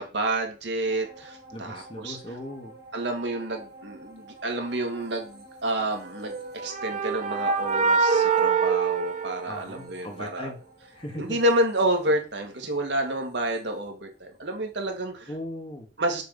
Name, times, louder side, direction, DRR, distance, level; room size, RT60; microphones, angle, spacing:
voice 1, 0.0-2.2 2.9-10.5 11.2-15.3 16.0-16.2, right 1 dB, 65° right, 2 dB, 2.1 m, -29 dB
sound 1, 0.8-14.5 14.9-15.0, right 1 dB, 20° right, 3.2 m, -50 dB
voice 2, 1.5-2.7 9.5-10.6 10.9-11.4 15.3-15.9, left 1 dB, 30° left, 3 dB, 1.7 m, -38 dB
sound 2, 6.2-10.1, right 5 dB, 40° right, 0.7 m, -25 dB
6.7 x 4.7 x 6.8 m, 0.36 s
head